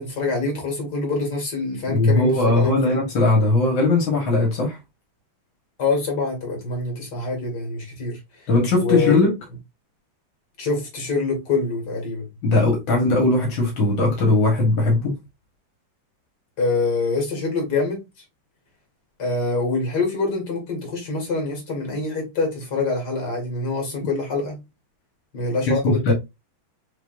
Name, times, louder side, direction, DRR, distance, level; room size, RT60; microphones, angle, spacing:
voice 1, 0.0-3.0 5.8-8.4 8.8-9.1 10.6-12.3 16.6-18.1 19.2-24.6 25.3-26.1, left 3 dB, 55° left, 2.5 m, -25 dB
voice 2, 1.9-4.8 8.5-9.3 12.4-15.1 25.8-26.1, left 2 dB, 75° left, 2.1 m, -19 dB
6.0 x 3.0 x 2.5 m
omnidirectional pair, 2.2 m